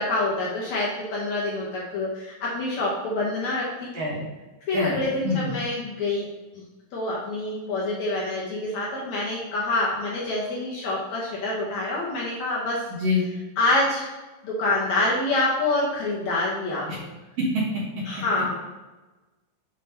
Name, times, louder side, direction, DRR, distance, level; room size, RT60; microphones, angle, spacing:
voice 1, 0.0-3.9 4.7-6.3 6.9-12.8 13.6-14.1 14.4-16.9 18.1-18.5, left 2 dB, 65° left, -5 dB, 2.1 m, -26 dB
voice 2, 12.9-13.3 17.4-18.0, left 2 dB, 55° right, -4 dB, 2.0 m, -25 dB
7.5 x 4.9 x 2.9 m, 1.1 s
omnidirectional pair, 3.9 m